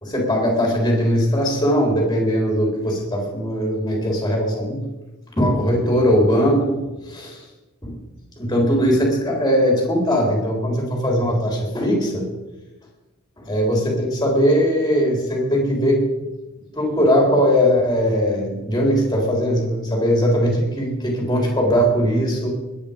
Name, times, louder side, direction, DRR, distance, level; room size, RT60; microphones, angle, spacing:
voice 1, 0.0-4.8 5.4-7.4 7.8-8.0 8.4-12.3 13.4-16.0 16.7-22.5, equal, 15° left, 0 dB, 3.7 m, -20 dB
21.5 x 8.9 x 5.2 m, 1.1 s
head